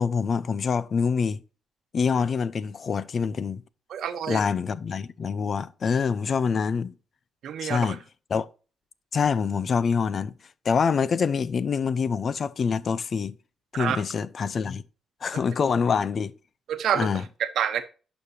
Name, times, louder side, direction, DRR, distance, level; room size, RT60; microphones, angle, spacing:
voice 1, 0.0-1.4 1.9-3.6 4.3-6.9 7.6-8.0 8.3-8.5 9.1-10.3 10.6-13.4 13.7-14.8 15.2-16.3 16.9-17.2, left 6 dB, 45° left, 0.6 m, -25 dB
voice 2, 3.9-4.4 7.4-8.0 13.8-14.0 16.7-17.1 17.4-17.8, right 9 dB, 70° right, 1.0 m, -27 dB
11.0 x 5.2 x 2.8 m
cardioid pair, 90°, 0 cm